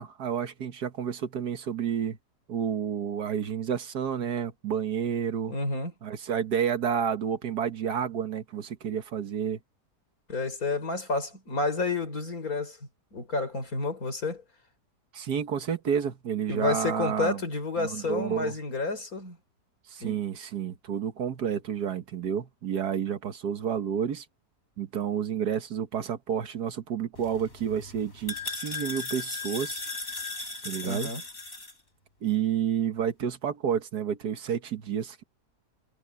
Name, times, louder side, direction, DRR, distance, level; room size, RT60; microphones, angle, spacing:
voice 1, 0.0-2.2 2.5-5.5 6.0-9.6 15.1-17.4 17.8-18.5 19.9-24.3 24.8-29.8 30.6-31.1 32.2-35.2, right 8 dB, 75° right, 1.9 m, -30 dB
voice 2, 5.5-5.9 10.3-12.8 13.1-14.4 16.5-19.4 20.0-20.2 30.8-31.2, left 3 dB, 60° left, 4.9 m, -30 dB
sound 1, 27.2-31.7, left 3 dB, 40° left, 5.1 m, -37 dB
omnidirectional pair, 1.7 m